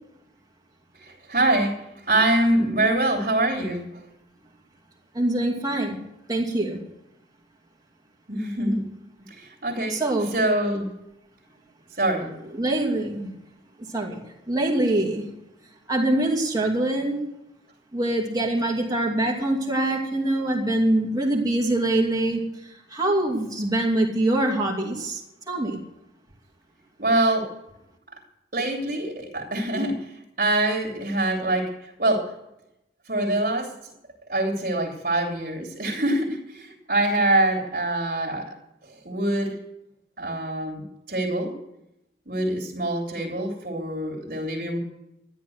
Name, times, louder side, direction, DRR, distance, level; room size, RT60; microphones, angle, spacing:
voice 1, 1.0-4.0 8.3-8.8 9.3-10.9 12.0-12.3 27.0-27.5 28.5-30.1 30.4-32.3 33.1-33.7 34.3-38.5 38.8-39.6 40.2-41.6 42.3-44.8, right 1 dB, 45° right, -1 dB, 3.0 m, -25 dB
voice 2, 5.1-6.0 6.3-6.8 9.9-10.3 12.5-13.3 13.9-14.2 14.5-15.3 15.9-17.2 17.9-25.2 25.5-25.8, right 1 dB, 20° right, -1 dB, 2.6 m, -24 dB
13.5 x 11.0 x 7.9 m, 0.87 s
head